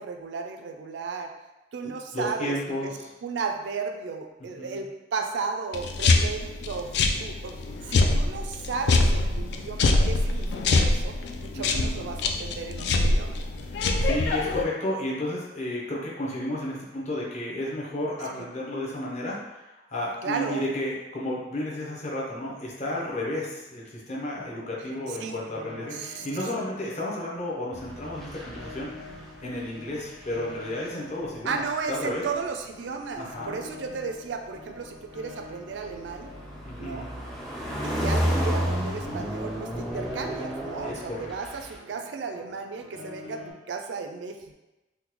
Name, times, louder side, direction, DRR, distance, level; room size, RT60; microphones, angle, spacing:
voice 1, 0.0-1.3 1.7-2.5 2.8-2.9 3.2-13.4 18.3-18.5 20.2-20.6 25.1-25.4 25.9-26.3 31.4-36.3 36.8-37.1 37.8-44.5, right 5 dB, 75° right, 5 dB, 0.4 m, -34 dB
voice 2, 1.8-3.1 4.6-4.8 11.5-12.1 13.7-28.9 29.4-31.6 31.9-32.2 33.2-33.6 36.6-37.1 40.8-41.3, left 1 dB, 40° left, -4 dB, 0.7 m, -32 dB
sound 1, 5.7-14.6, left 2 dB, 65° left, 0.3 m, -24 dB
Piano, 24.3-43.5, left 3 dB, 90° left, 0.7 m, -47 dB
sound 2, 27.7-29.7 29.9-31.2 32.2-32.5 34.6-41.8, equal, ahead, 0.5 m, -31 dB
3.6 x 2.1 x 3.0 m, 1.0 s
head